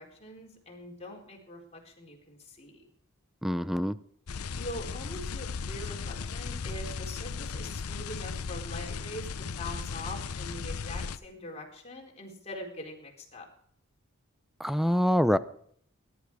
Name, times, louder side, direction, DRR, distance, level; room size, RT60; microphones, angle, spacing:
voice 1, 0.0-2.8 4.5-13.5, left 1 dB, 30° left, 0 dB, 4.2 m, -43 dB
voice 2, 3.4-4.0 14.6-15.4, equal, ahead, 13 dB, 0.6 m, -25 dB
sound 1, 4.3-11.2, left 5 dB, 80° left, 0.7 m, -36 dB
21.0 x 12.0 x 4.8 m, 0.64 s
head